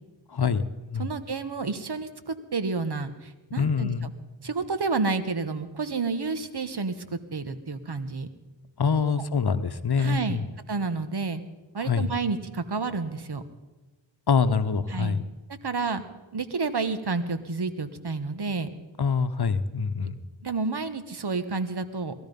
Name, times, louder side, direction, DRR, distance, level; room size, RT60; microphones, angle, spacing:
voice 1, 0.3-1.1 3.6-4.1 8.8-10.5 11.8-12.1 14.3-15.2 19.0-20.2, left 5 dB, 55° left, 11 dB, 1.0 m, -25 dB
voice 2, 1.0-4.1 4.4-8.3 9.0-9.2 10.0-10.4 10.7-11.4 11.7-13.4 14.9-15.1 15.6-16.0 16.3-18.7 20.4-22.1, right 4 dB, 55° right, 11 dB, 1.3 m, -30 dB
19.5 x 13.0 x 5.3 m, 1.1 s
cardioid pair, 45°, 46 cm